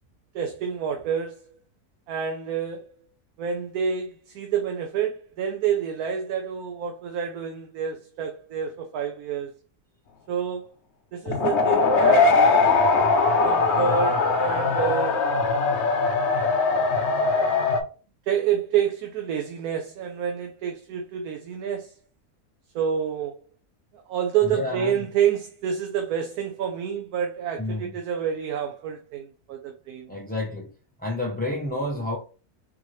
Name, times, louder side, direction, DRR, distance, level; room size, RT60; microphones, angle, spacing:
voice 1, 0.3-1.5 2.1-3.1 3.4-9.5 10.3-10.7 11.1-12.8 13.4-15.9 17.1-17.5 18.3-22.0 22.7-23.4 23.9-30.1, right 8 dB, 75° right, 1.1 m, -28 dB
sound 1, 11.3-17.8, left 4 dB, 55° left, 1.0 m, -21 dB
voice 2, 24.4-25.0 27.6-27.9 30.1-30.7 31.0-32.2, left 2 dB, 10° left, 0.4 m, -29 dB
4.6 x 2.8 x 3.1 m
omnidirectional pair, 1.6 m